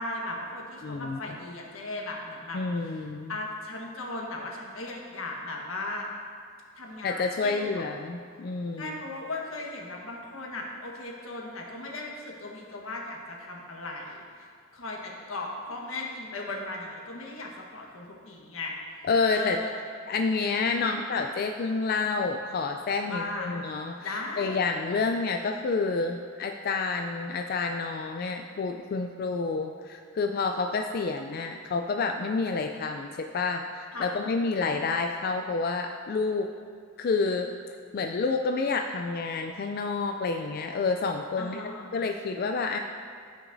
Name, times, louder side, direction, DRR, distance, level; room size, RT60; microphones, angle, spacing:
voice 1, 0.0-6.1 6.7-7.8 8.8-14.5 14.7-19.7 20.7-21.0 23.1-23.5 24.0-24.6 33.9-34.1 34.5-34.9 41.4-41.9, left 2 dB, 90° left, -1 dB, 1.3 m, -37 dB
voice 2, 0.8-1.2 2.5-3.3 7.0-9.0 19.0-19.6 20.1-36.5 37.0-37.5 37.9-42.8, left 4 dB, 50° left, 4 dB, 0.3 m, -29 dB
14.5 x 6.0 x 2.7 m, 2.2 s
head